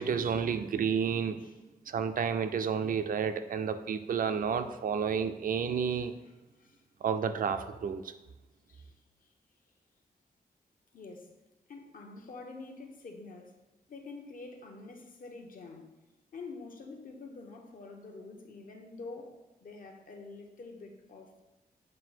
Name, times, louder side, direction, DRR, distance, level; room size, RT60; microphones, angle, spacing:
voice 1, 0.0-1.4 1.9-6.1 7.0-8.1, right 7 dB, 60° right, 9 dB, 0.4 m, -31 dB
voice 2, 5.9-6.3 6.6-6.8 8.7-8.9 9.2-9.3 10.9-11.3 11.7-13.6 13.9-15.9 16.3-21.4, left 3 dB, 60° left, 2 dB, 0.9 m, -47 dB
7.6 x 2.6 x 5.7 m, 1.1 s
wide cardioid pair, 155°, 16 cm